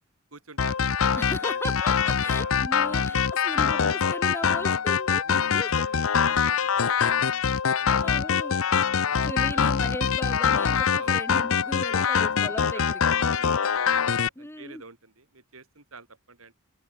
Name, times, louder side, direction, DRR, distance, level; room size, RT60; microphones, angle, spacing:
voice 1, 0.3-1.6 2.2-2.6 2.9-4.1 5.2-7.1 7.8-8.1 8.5-9.6 10.9-11.3 11.9-12.9 13.2-16.6, right 4 dB, 80° right, 5.7 m, -46 dB
sound 1, 0.6-14.3, left 6 dB, 70° left, 0.7 m, -24 dB
voice 2, 1.2-3.8 4.1-5.7 7.8-8.6 9.2-13.0 14.4-14.8, left 1 dB, 10° left, 5.5 m, -37 dB
head